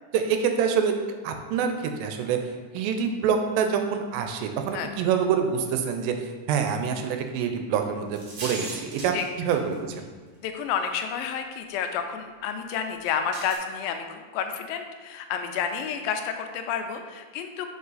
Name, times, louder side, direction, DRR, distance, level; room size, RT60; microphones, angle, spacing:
voice 1, 0.1-1.0 1.2-2.4 2.7-10.1, right 7 dB, 85° right, 5 dB, 2.4 m, -26 dB
sound 1, 8.1-10.0 10.8-10.9 13.3-13.6, right 2 dB, 60° right, 1.4 m, -37 dB
voice 2, 10.4-17.7, left 7 dB, 85° left, 6 dB, 2.3 m, -30 dB
5.5 x 5.0 x 4.0 m, 1.4 s
omnidirectional pair, 4.1 m